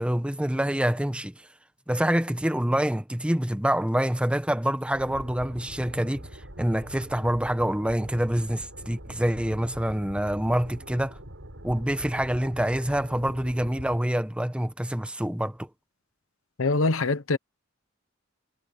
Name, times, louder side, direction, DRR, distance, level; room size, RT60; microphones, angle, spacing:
voice 1, 0.0-1.3 1.9-11.2 11.6-15.7, equal, 5° right, 1.0 m, -26 dB
sound 1, 4.9-14.0, right 1 dB, 75° right, 5.8 m, -43 dB
voice 2, 16.6-17.4, left 3 dB, 85° left, 0.9 m, -23 dB
head